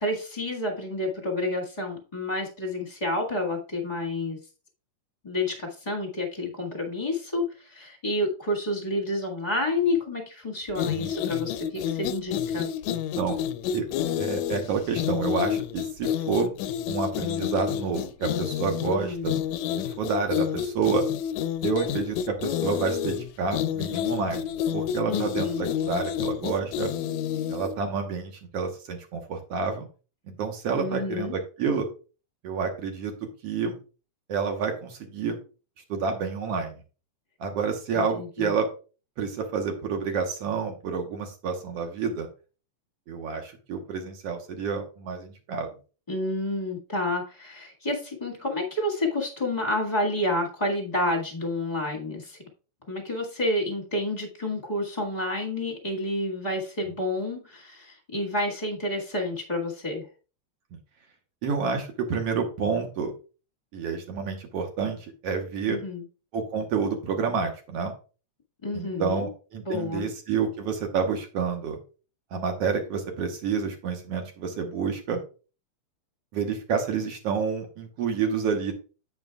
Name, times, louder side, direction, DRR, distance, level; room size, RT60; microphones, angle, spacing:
voice 1, 0.0-4.4 5.2-12.7 18.8-19.4 25.1-25.7 30.8-31.3 37.9-38.5 46.1-52.4 52.9-60.1 65.7-66.0 68.6-69.3 69.6-70.1, left 1 dB, 20° left, -1 dB, 1.2 m, -29 dB
sound 1, 10.7-27.8, left 10 dB, 80° left, 1.8 m, -29 dB
voice 2, 12.9-13.4 13.7-13.9 14.2-16.5 16.9-19.3 20.0-21.0 21.6-26.9 27.5-29.9 30.3-31.9 32.4-33.1 33.4-33.8 34.3-35.4 35.9-36.8 37.4-38.7 39.2-42.3 43.1-45.7 60.7-60.8 61.4-63.1 63.7-65.8 66.3-67.9 68.7-71.8 72.3-75.2 76.3-78.7, right 5 dB, 65° right, 4 dB, 1.9 m, -29 dB
9.4 x 8.6 x 2.3 m, 0.35 s
omnidirectional pair, 3.4 m